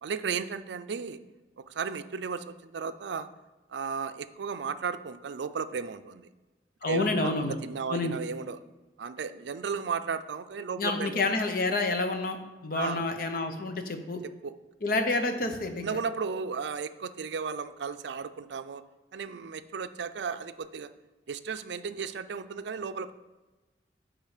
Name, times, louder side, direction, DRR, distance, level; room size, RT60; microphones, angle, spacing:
voice 1, 0.0-1.2 1.6-3.3 3.7-6.3 6.9-8.6 9.0-11.2 12.7-13.1 14.4-14.6 14.9-15.0 15.8-18.8 19.1-20.9 21.3-23.1, right 5 dB, 80° right, 12 dB, 0.4 m, -34 dB
voice 2, 6.8-7.6 7.9-8.1 10.8-12.4 12.6-14.2 14.8-15.8, left 2 dB, 55° left, 6 dB, 0.8 m, -28 dB
9.6 x 3.8 x 4.9 m, 1.2 s
head